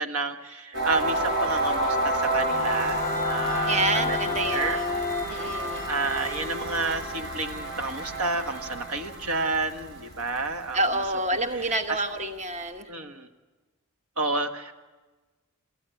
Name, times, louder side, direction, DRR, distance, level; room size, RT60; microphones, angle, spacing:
voice 1, 0.0-4.2 4.5-4.8 5.9-10.8 11.6-12.0 12.9-13.3 14.2-14.7, right 3 dB, 75° right, 6 dB, 1.5 m, -30 dB
sound 1, 0.7-10.6, right 1 dB, 55° right, 7.5 m, -30 dB
sound 2, 2.2-7.7, left 4 dB, 25° left, 0.7 m, -33 dB
sound 3, 2.2-7.1, equal, 15° right, 5.6 m, -38 dB
voice 2, 3.6-4.9 5.3-5.9 10.7-12.9, right 2 dB, 30° right, 7 dB, 1.0 m, -28 dB
28.5 x 13.5 x 9.2 m, 1.3 s
head